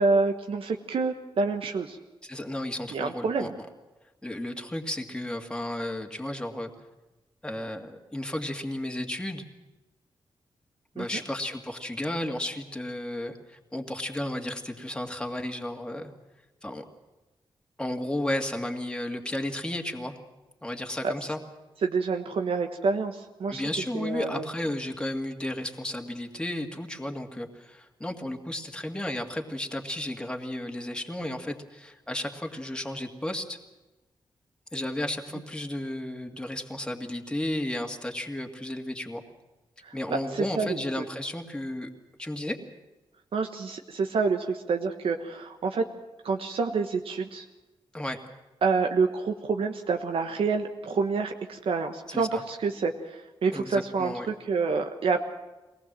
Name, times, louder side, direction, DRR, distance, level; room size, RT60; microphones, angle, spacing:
voice 1, 0.0-2.0 2.9-3.5 11.0-11.1 21.0-21.1 21.8-23.6 23.9-24.4 39.8-41.0 43.3-45.8 46.2-47.4 48.6-55.2, right 4 dB, 80° right, 4 dB, 1.3 m, -28 dB
voice 2, 2.2-3.5 4.2-6.7 7.4-9.4 10.9-16.1 16.6-16.8 17.8-20.2 20.6-21.4 23.5-33.6 34.7-39.2 39.9-41.9 42.2-42.6 47.9-48.2 52.1-52.4 53.5-54.3, left 1 dB, 10° left, 3 dB, 2.2 m, -33 dB
23.5 x 19.0 x 7.6 m, 1.1 s
wide cardioid pair, 115°, 9 cm